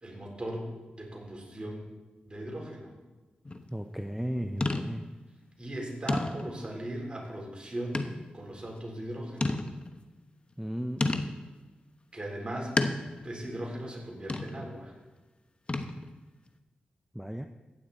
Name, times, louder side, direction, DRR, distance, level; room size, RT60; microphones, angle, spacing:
voice 1, 0.0-1.9 2.2-2.9 5.6-8.0 8.3-9.5 12.1-12.7 13.2-14.9, right 1 dB, 30° right, -1 dB, 4.0 m, -38 dB
sound 1, 3.5-3.7 4.6-5.2 5.6-5.7 6.1-6.7 7.9-8.3 8.8-8.9 9.4-10.0 11.0-11.5 12.8-13.3 14.3-14.7 15.7-16.2, left 2 dB, 35° left, 1.0 m, -31 dB
voice 2, 3.7-5.1 10.6-11.0 17.1-17.5, equal, 5° right, 6 dB, 0.6 m, -35 dB
15.0 x 9.5 x 4.2 m, 1.2 s
cardioid pair, 60°, 3 cm